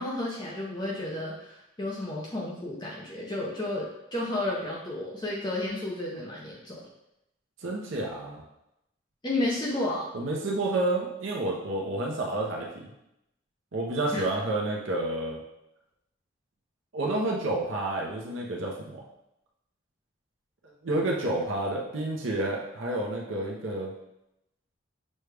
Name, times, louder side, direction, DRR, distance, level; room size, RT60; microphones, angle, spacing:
voice 1, 0.0-6.9 9.2-10.1 14.1-14.2, left 1 dB, 20° left, -4 dB, 0.6 m, -32 dB
voice 2, 7.6-8.4 10.1-12.9 13.7-15.4 16.9-19.0 20.8-23.9, right 2 dB, 75° right, -2 dB, 0.7 m, -30 dB
6.3 x 2.2 x 3.3 m, 0.84 s
head